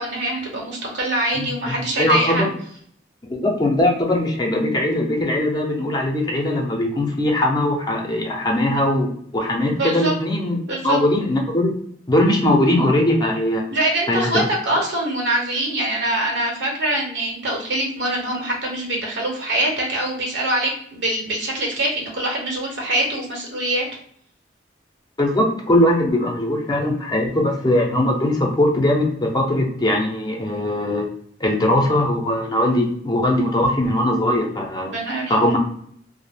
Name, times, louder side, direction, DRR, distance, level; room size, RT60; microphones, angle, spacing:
voice 1, 0.0-2.5 9.7-10.1 10.7-11.0 13.7-23.8 34.8-35.4, right 1 dB, 75° right, -1 dB, 1.0 m, -24 dB
voice 2, 1.4-2.5 3.3-10.6 10.8-11.7 12.1-13.7 14.1-14.4 25.2-31.1 31.4-34.9 35.3-35.6, left 1 dB, 25° left, 0 dB, 0.6 m, -20 dB
2.4 x 2.0 x 3.4 m, 0.65 s
head